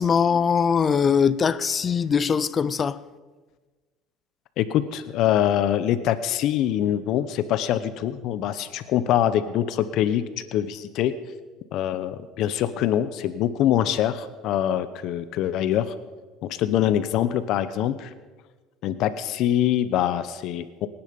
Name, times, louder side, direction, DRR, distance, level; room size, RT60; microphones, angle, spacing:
voice 1, 0.0-3.0, left 6 dB, 30° left, 0.5 m, -21 dB
voice 2, 4.6-10.2 10.5-11.1 11.7-15.9 16.4-18.1 18.8-20.9, left 11 dB, 60° left, 0.8 m, -24 dB
24.5 x 10.0 x 5.3 m
cardioid pair, 120°, 0 cm